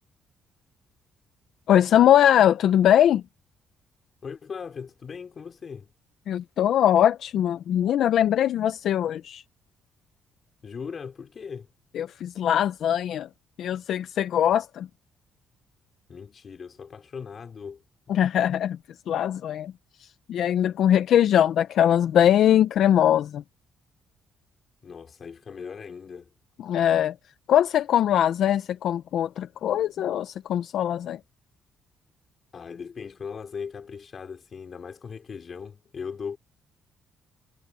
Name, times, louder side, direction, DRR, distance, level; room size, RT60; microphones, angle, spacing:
voice 1, 1.7-3.2 6.3-9.4 11.9-13.3 13.6-14.9 18.1-18.8 19.1-19.7 20.0-23.4 26.6-27.1 27.5-31.2, left 10 dB, 75° left, 0.7 m, -21 dB
voice 2, 4.2-5.9 10.6-11.7 16.1-17.8 18.1-18.2 24.8-26.3 32.5-36.4, left 6 dB, 45° left, 3.4 m, -38 dB
cardioid pair, 90°, 0 cm